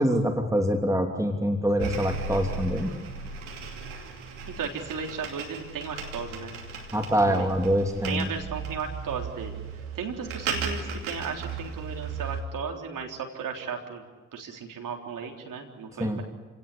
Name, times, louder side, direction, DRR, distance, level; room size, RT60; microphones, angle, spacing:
voice 1, 0.0-2.9 6.9-8.3 16.0-16.2, equal, 10° right, 4 dB, 2.9 m, -25 dB
sound 1, 1.8-12.4, right 5 dB, 85° right, 2.7 m, -36 dB
voice 2, 4.6-6.6 7.2-7.5 8.1-9.6 9.9-14.0 14.3-16.2, right 6 dB, 60° right, 3 dB, 3.7 m, -35 dB
28.5 x 18.0 x 8.5 m, 1.4 s
hypercardioid pair, 40°, 36 cm